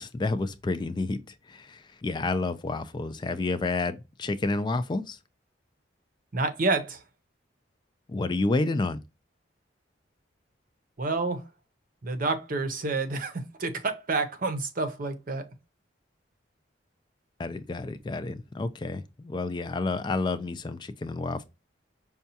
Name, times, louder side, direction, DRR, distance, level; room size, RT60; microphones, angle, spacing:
voice 1, 0.0-5.2 8.1-9.0 17.4-21.4, left 3 dB, 25° left, 0.3 m, -30 dB
voice 2, 6.3-7.0 11.0-11.4 12.0-15.4, right 3 dB, 50° right, 0.7 m, -29 dB
5.5 x 2.3 x 2.7 m
head